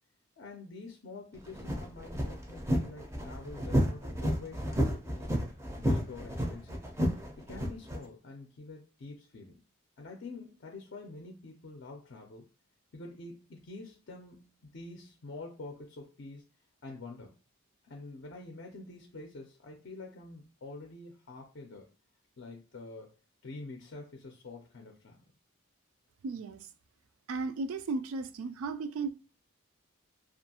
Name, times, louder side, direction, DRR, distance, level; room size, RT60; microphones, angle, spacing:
voice 1, 0.4-5.4 5.8-6.8 7.4-9.7 10.0-12.5 12.9-16.4 16.8-17.3 17.8-21.9 22.4-23.1 23.4-25.3, left 3 dB, 55° left, 0.4 m, -46 dB
sound 1, 1.4-8.0, equal, 15° right, 0.4 m, -31 dB
voice 2, 26.2-26.7 27.3-29.1, right 3 dB, 80° right, 0.3 m, -35 dB
2.6 x 2.4 x 2.7 m
head